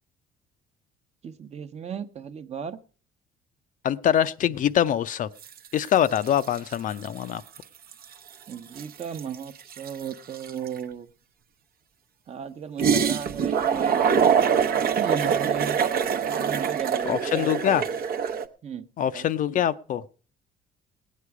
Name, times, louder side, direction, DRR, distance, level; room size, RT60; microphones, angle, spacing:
voice 1, 1.2-2.8 8.5-11.1 12.3-14.2 15.0-15.8 16.3-17.7 18.6-18.9 19.1-19.3, right 7 dB, 40° right, 0.8 m, -35 dB
voice 2, 3.8-5.3 5.7-7.4 17.1-17.8 19.0-20.1, left 10 dB, 50° left, 0.5 m, -24 dB
sound 1, 5.4-5.7 5.9-7.2 7.6-7.7 7.9-10.8 12.8-18.4, right 7 dB, 65° right, 0.8 m, -24 dB
19.0 x 8.3 x 4.7 m
cardioid pair, 110°, 17 cm